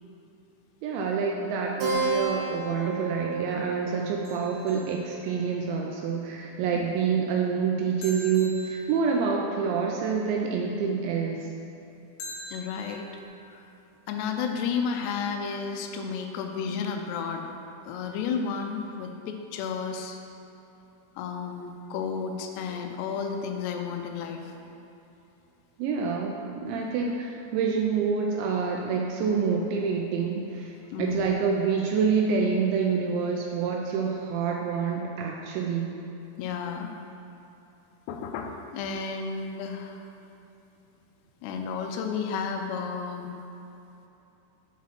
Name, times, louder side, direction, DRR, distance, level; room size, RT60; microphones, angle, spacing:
voice 1, 0.8-11.5 25.8-30.7 31.0-35.9, right 5 dB, 80° right, 0 dB, 2.8 m, -27 dB
Keyboard (musical), 1.8-6.8, right 3 dB, 65° right, 2.2 m, -33 dB
sound 1, 4.3-5.8 8.0-9.6 12.2-13.3, left 1 dB, 70° left, 2.3 m, -44 dB
voice 2, 12.5-13.1 13.5-13.6 14.1-17.5 17.8-20.2 21.2-24.8 30.9-31.3 36.4-36.9 38.1-40.1 41.4-43.3, left 6 dB, 85° left, 3 dB, 2.5 m, -32 dB
7.5 x 4.8 x 5.6 m, 2.9 s
omnidirectional pair, 5.4 m